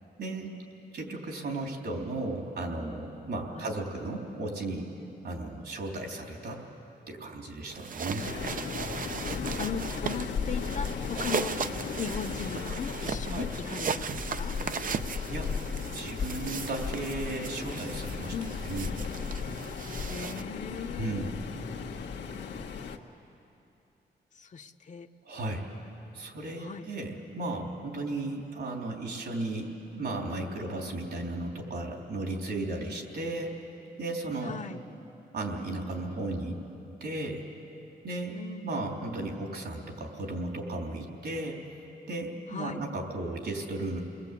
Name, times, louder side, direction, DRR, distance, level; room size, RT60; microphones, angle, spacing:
voice 1, 0.2-0.5 0.9-4.9 5.2-6.6 7.1-8.3 13.2-13.4 15.3-15.5 15.9-18.3 18.6-18.9 21.0-21.4 25.2-25.7 26.1-33.5 34.0-34.6 35.3-36.6 37.0-37.4 38.0-41.6 42.1-44.0, right 2 dB, 75° right, 1 dB, 3.7 m, -35 dB
sound 1, 7.7-20.4, right 6 dB, 50° right, 0.6 m, -37 dB
Waves surf, 8.2-23.0, left 6 dB, 90° left, 1.4 m, -36 dB
voice 2, 9.6-11.5 11.9-14.5 18.3-18.5 20.1-21.3 22.4-22.8 24.3-25.1 26.6-26.9 34.4-34.8 38.3-38.7 42.5-42.8, left 5 dB, 45° left, 6 dB, 0.9 m, -38 dB
29.5 x 21.0 x 8.5 m, 2.8 s
cardioid pair, 105°, 17 cm